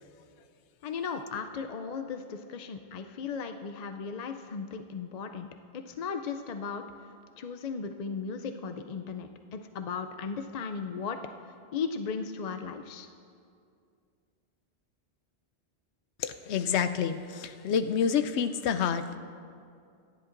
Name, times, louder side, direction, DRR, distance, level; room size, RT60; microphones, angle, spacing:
voice 1, 0.8-6.8 7.4-11.2 11.7-13.1, left 5 dB, 50° left, 7 dB, 0.5 m, -36 dB
voice 2, 16.2-19.2, left 7 dB, 85° left, 10 dB, 0.9 m, -28 dB
24.5 x 11.0 x 2.6 m, 2.4 s
omnidirectional pair, 1.1 m